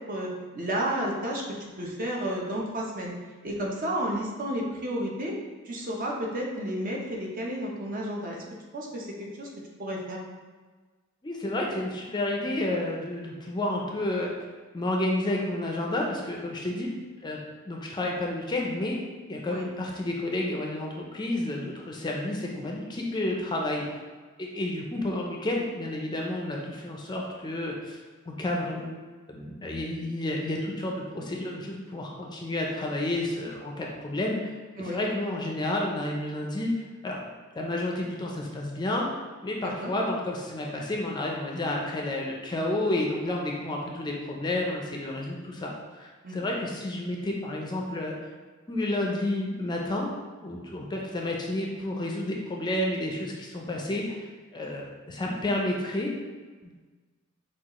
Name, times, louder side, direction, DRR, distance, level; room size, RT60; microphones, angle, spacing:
voice 1, 0.1-1.4 1.8-3.1 3.4-5.3 5.7-8.4 8.7-9.1 9.4-9.5 9.8-10.2 19.4-19.7 34.8-35.0 39.6-39.9 46.2-46.4, right 1 dB, 40° right, -2 dB, 0.7 m, -31 dB
voice 2, 11.2-14.3 14.7-16.9 17.2-17.4 17.7-19.0 19.3-24.0 24.4-28.0 28.3-29.0 29.3-34.4 34.8-37.2 37.6-48.2 48.7-50.1 50.4-54.3 54.5-56.1 56.6-56.7, left 1 dB, 20° left, -1 dB, 0.5 m, -30 dB
6.1 x 2.4 x 3.0 m, 1.4 s
head